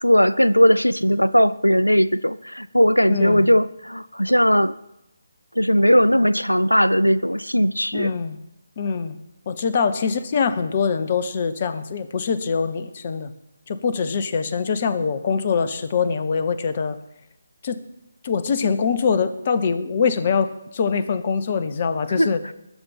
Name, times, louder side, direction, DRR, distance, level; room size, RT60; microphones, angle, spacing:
voice 1, 0.0-4.7 5.6-8.1 22.2-22.3, equal, 90° left, 18 dB, 0.4 m, -18 dB
voice 2, 3.1-3.5 7.9-8.4 8.8-9.1 9.5-13.3 13.7-17.0 17.6-17.8 18.2-22.4, left 5 dB, 35° left, 12 dB, 0.8 m, -23 dB
20.5 x 6.8 x 5.8 m, 0.86 s
figure-of-eight pair, 150°, 0 cm